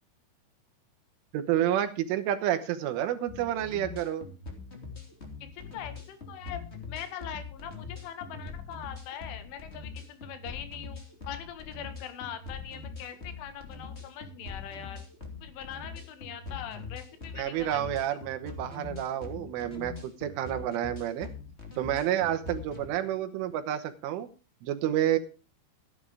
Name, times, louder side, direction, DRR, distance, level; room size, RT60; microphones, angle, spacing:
voice 1, 1.3-4.3 17.3-21.3 21.8-24.3 24.6-25.2, right 11 dB, 85° right, 8 dB, 3.7 m, -29 dB
sound 1, 3.3-22.9, left 4 dB, 20° left, 2.3 m, -43 dB
voice 2, 5.5-6.6 6.9-15.1 15.4-18.0, left 9 dB, 80° left, 10 dB, 4.1 m, -42 dB
14.0 x 10.5 x 4.9 m, 0.33 s
omnidirectional pair, 5.5 m